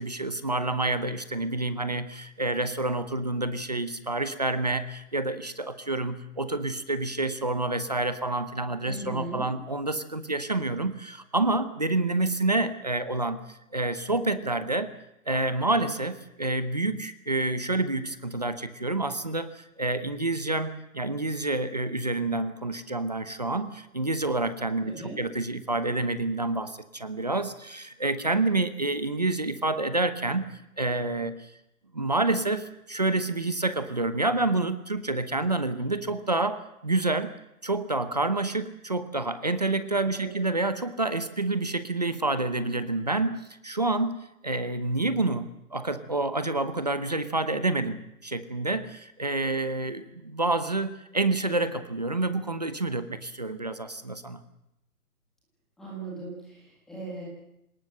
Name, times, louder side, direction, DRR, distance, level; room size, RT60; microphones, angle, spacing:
voice 1, 0.0-14.9 15.3-30.4 30.8-31.5 31.9-37.3 37.6-44.2 44.4-54.4, right 2 dB, 25° right, 11 dB, 0.9 m, -28 dB
voice 2, 8.8-9.5 24.9-25.2 40.0-40.3 55.8-57.2, right 2 dB, ahead, -6 dB, 1.7 m, -38 dB
27.0 x 18.5 x 7.8 m, 0.85 s
hypercardioid pair, 180°, 46 cm